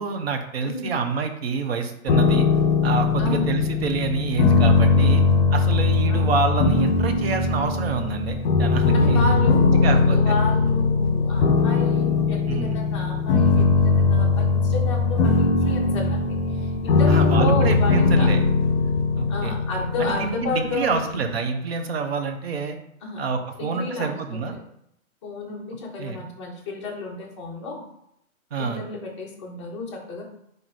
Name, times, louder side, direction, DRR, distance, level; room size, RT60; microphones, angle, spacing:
voice 1, 0.0-2.5 2.8-5.2 5.5-9.2 9.8-10.3 12.5-12.8 17.1-18.4 19.2-19.6 20.0-22.8 23.2-24.5 26.0-26.3 28.5-28.8, right 5 dB, 45° right, 6 dB, 0.7 m, -27 dB
sound 1, 2.1-21.0, left 4 dB, 45° left, 1.2 m, -20 dB
voice 2, 3.2-3.5 4.9-5.4 6.1-6.4 8.9-18.3 19.3-21.4 23.0-23.2 23.6-24.6 25.2-27.8 28.6-30.2, left 3 dB, 20° left, -2 dB, 0.7 m, -31 dB
4.6 x 2.6 x 4.0 m, 0.76 s
hypercardioid pair, 160°, 42 cm